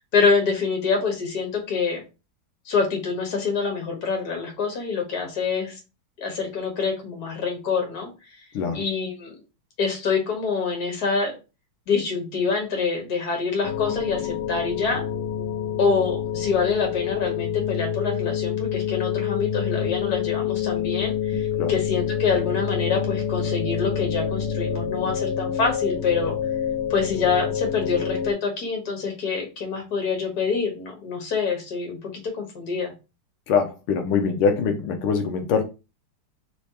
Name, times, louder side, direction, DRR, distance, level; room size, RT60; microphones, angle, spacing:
voice 1, 0.1-2.0 2.7-5.8 6.2-8.1 8.7-9.3 9.8-11.3 11.9-15.0 15.8-26.3 26.9-32.1 32.4-32.9, left 5 dB, 50° left, 1.9 m, -26 dB
sound 1, 13.6-28.3, left 8 dB, 70° left, 1.3 m, -27 dB
voice 2, 33.5-35.6, left 5 dB, 85° left, 1.5 m, -23 dB
5.4 x 3.3 x 2.8 m
omnidirectional pair, 2.4 m